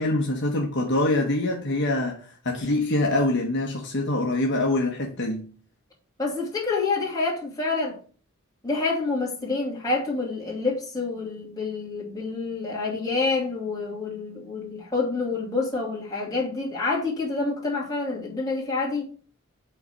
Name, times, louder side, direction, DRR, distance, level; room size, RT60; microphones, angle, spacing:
voice 1, 0.0-5.5, left 2 dB, 55° left, 1.1 m, -25 dB
voice 2, 6.2-8.0 8.6-19.1, left 3 dB, 20° left, 2.6 m, -27 dB
5.8 x 4.1 x 6.1 m
head